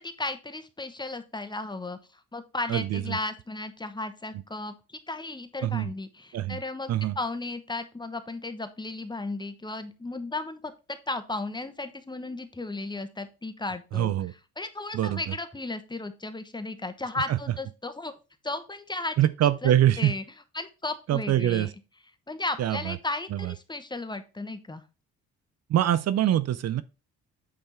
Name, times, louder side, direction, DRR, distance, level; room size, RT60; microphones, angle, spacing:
voice 1, 0.0-14.1 14.6-18.1 18.4-19.2 19.4-20.2 20.5-21.7 22.3-24.8, left 2 dB, 15° left, 1.0 m, -35 dB
voice 2, 2.7-3.2 5.6-5.9 6.3-6.6 6.9-7.2 13.9-14.3 14.9-15.2 17.3-17.4 19.2-20.1 21.1-21.7 22.6-23.0 23.3-23.5 25.7-26.8, right 12 dB, 60° right, 0.5 m, -24 dB
8.7 x 3.5 x 4.3 m
cardioid pair, 90°, 30 cm